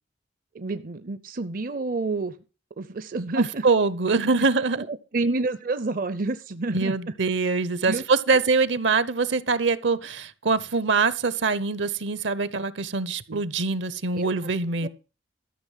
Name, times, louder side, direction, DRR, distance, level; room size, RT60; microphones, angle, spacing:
voice 1, 0.5-2.4 2.8-3.7 4.8-7.0 7.9-8.0 8.3-8.4 13.3-13.4 14.1-14.3 14.8-14.9, right 3 dB, 45° right, 0.6 m, -29 dB
voice 2, 3.4-4.9 6.7-14.9, right 4 dB, 70° right, 0.9 m, -24 dB
13.5 x 6.1 x 7.4 m
head